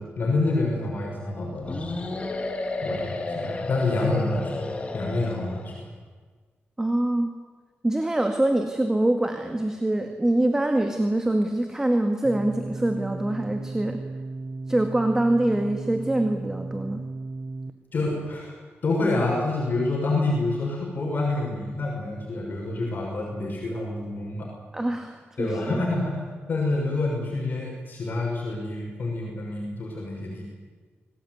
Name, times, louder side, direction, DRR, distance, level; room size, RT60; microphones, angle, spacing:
voice 1, 0.0-2.0 2.3-2.4 2.8-4.7 4.9-5.7 17.9-18.6 18.8-24.5 25.4-26.2 26.5-30.4, left 2 dB, 45° left, -2 dB, 6.5 m, -27 dB
sound 1, 1.7-5.8, left 2 dB, 30° left, 2.8 m, -32 dB
voice 2, 6.8-7.3 7.8-14.0 14.7-17.0 24.7-25.8, right 1 dB, 15° right, 5 dB, 2.0 m, -24 dB
sound 2, 12.2-17.7, right 3 dB, 35° right, 1.2 m, -35 dB
26.5 x 18.0 x 9.5 m, 1.5 s
wide cardioid pair, 130°, 4 cm